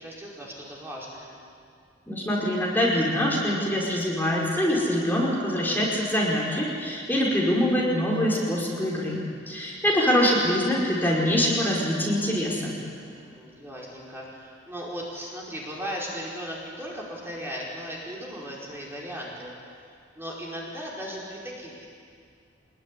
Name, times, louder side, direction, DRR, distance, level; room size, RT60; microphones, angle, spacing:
voice 1, 0.0-1.4 9.5-9.7 13.0-19.5 20.1-21.9, equal, 15° right, -4 dB, 5.0 m, -37 dB
voice 2, 2.1-9.2 9.5-12.7, equal, 10° left, -4 dB, 4.9 m, -24 dB
25.0 x 21.5 x 10.0 m, 2.2 s
head